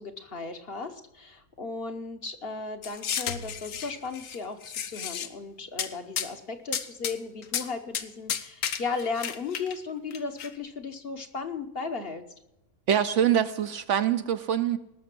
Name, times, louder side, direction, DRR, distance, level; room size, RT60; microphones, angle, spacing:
voice 1, 0.0-12.2, left 4 dB, 45° left, 7 dB, 1.1 m, -36 dB
sound 1, 2.8-4.4 4.6-5.3 5.8-5.9 6.2-6.3 6.7-7.1 7.4-7.7 7.9-8.0 8.3-9.8 10.1-10.5, left 8 dB, 65° left, 1.2 m, -32 dB
voice 2, 12.9-14.8, right 9 dB, 65° right, 11 dB, 0.9 m, -24 dB
19.0 x 6.4 x 6.0 m, 0.90 s
omnidirectional pair, 1.5 m